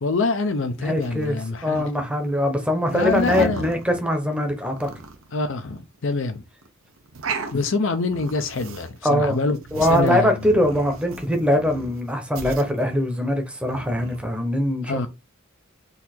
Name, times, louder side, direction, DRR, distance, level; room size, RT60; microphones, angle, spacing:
voice 1, 0.0-1.9 2.9-3.6 5.3-6.4 7.5-9.6 9.9-10.4 14.9-15.1, left 3 dB, 65° left, 0.6 m, -25 dB
voice 2, 0.8-4.9 9.0-9.4 9.7-15.1, left 1 dB, 5° right, 0.8 m, -22 dB
sound 1, 1.0-1.8 2.8-4.4 4.7-5.3 5.8-5.9 6.1-6.2 6.6-6.7 7.0-7.7 8.1-9.0 9.3-12.0 12.4-13.1 13.6-14.3, right 3 dB, 85° right, 0.8 m, -34 dB
4.0 x 2.8 x 4.3 m
head